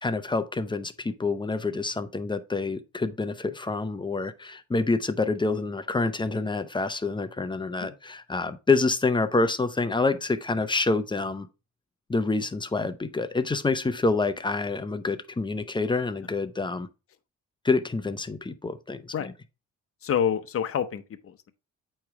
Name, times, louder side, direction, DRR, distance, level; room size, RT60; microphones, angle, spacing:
voice 1, 0.0-11.5 12.1-16.9 17.6-19.3, left 3 dB, 15° left, 0.7 m, -27 dB
voice 2, 20.0-21.5, left 8 dB, 50° left, 0.8 m, -28 dB
8.5 x 3.2 x 4.7 m
cardioid pair, 90°, 30 cm